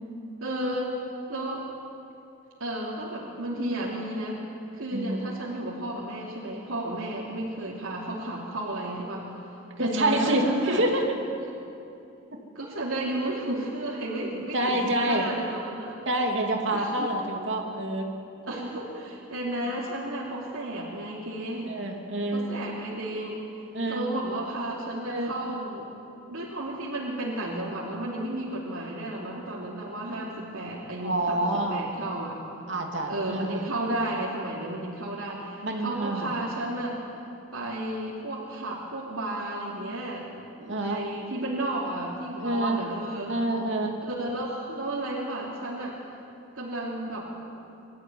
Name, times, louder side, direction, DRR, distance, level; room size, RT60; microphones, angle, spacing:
voice 1, 0.4-1.0 1.3-1.6 2.6-4.4 4.7-9.3 9.8-10.8 12.5-15.9 16.7-17.1 18.4-21.8 22.3-25.9 26.3-32.4 33.1-37.0 37.5-43.3 44.0-46.0 46.5-47.3, right 1 dB, 90° right, -6 dB, 3.1 m, -33 dB
voice 2, 4.9-5.2 9.8-11.0 14.3-15.4 16.1-18.1 21.6-22.5 23.7-24.0 25.0-25.3 31.0-31.9 32.7-33.7 35.6-36.3 40.6-41.0 42.4-42.8 43.3-43.9, right 1 dB, 60° right, 1 dB, 2.7 m, -27 dB
24.0 x 13.5 x 9.5 m, 2.7 s
head